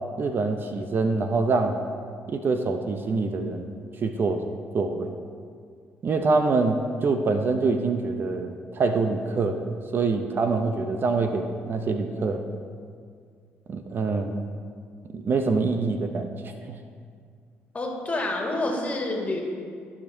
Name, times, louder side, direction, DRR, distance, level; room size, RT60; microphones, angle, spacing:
voice 1, 0.2-1.8 2.3-3.7 4.0-4.4 4.7-5.2 6.0-12.4 13.7-14.5 15.1-16.4 16.7-16.8, right 3 dB, 50° right, 6 dB, 0.6 m, -25 dB
voice 2, 17.7-19.4, left 2 dB, 30° left, -1 dB, 1.9 m, -28 dB
14.5 x 5.1 x 2.7 m, 2.2 s
supercardioid pair, 75°, 5 cm